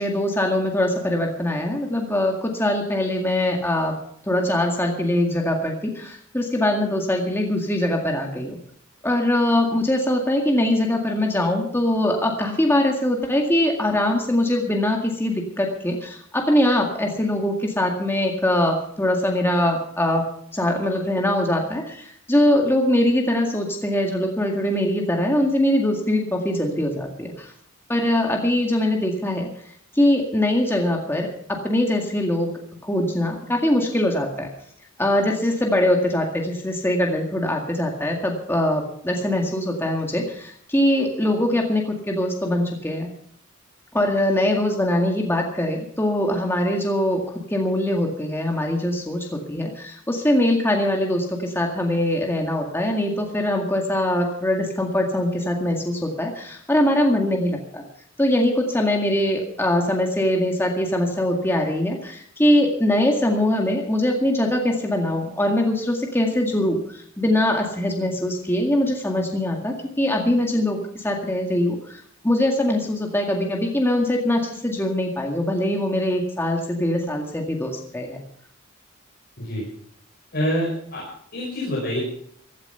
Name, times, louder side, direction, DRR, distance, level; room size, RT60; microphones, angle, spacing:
voice 1, 0.0-3.9 4.3-8.6 9.0-20.2 20.5-27.5 27.9-29.5 29.9-32.5 32.8-34.5 35.0-43.1 43.9-47.2 47.5-57.8 58.2-78.2, left 1 dB, 10° left, 1 dB, 2.0 m, -22 dB
voice 2, 80.3-82.0, equal, 50° left, -4 dB, 5.2 m, -26 dB
16.0 x 12.5 x 5.7 m, 0.64 s
head